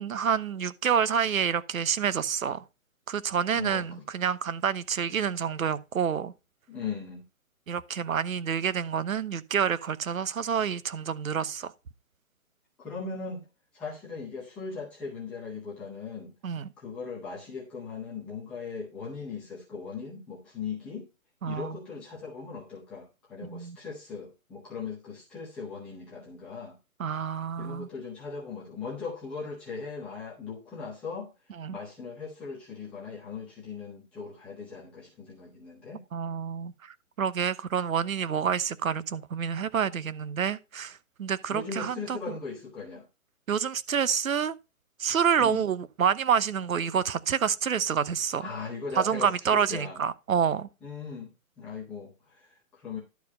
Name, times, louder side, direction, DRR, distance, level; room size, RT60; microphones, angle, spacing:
voice 1, 0.0-2.6 3.1-6.3 7.7-11.7 16.4-16.7 21.4-21.8 23.5-23.8 27.0-27.9 31.6-31.8 36.1-42.4 43.5-44.5 45.0-48.5 49.0-50.7, right 7 dB, 70° right, 1.0 m, -28 dB
voice 2, 3.5-3.9 6.7-7.2 12.8-13.5 13.7-16.3 16.8-21.1 21.5-26.8 27.6-31.3 31.7-36.0 41.5-43.0 45.4-45.6 48.4-50.0 50.8-51.3 51.6-53.0, left 5 dB, 5° left, 0.6 m, -39 dB
11.5 x 4.7 x 5.4 m
hypercardioid pair, 155°, 43 cm